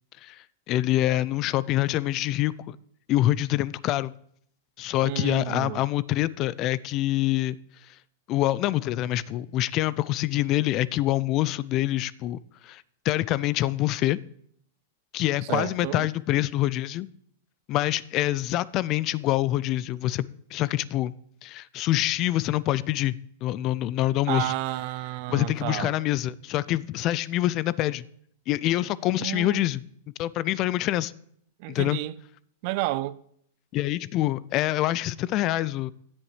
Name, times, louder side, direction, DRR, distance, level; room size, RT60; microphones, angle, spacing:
voice 1, 0.2-2.8 3.1-4.1 4.8-7.6 8.3-14.2 15.1-17.1 17.7-20.2 20.5-21.1 21.4-24.5 25.3-28.0 28.5-29.8 30.2-31.1 31.7-32.0 33.7-35.9, left 15 dB, 40° left, 0.3 m, -26 dB
voice 2, 5.0-5.8 15.5-16.1 24.3-25.9 29.2-29.6 31.6-32.1 32.6-33.2, right 18 dB, 50° right, 0.4 m, -31 dB
16.0 x 7.3 x 3.2 m
hypercardioid pair, 110°, 0 cm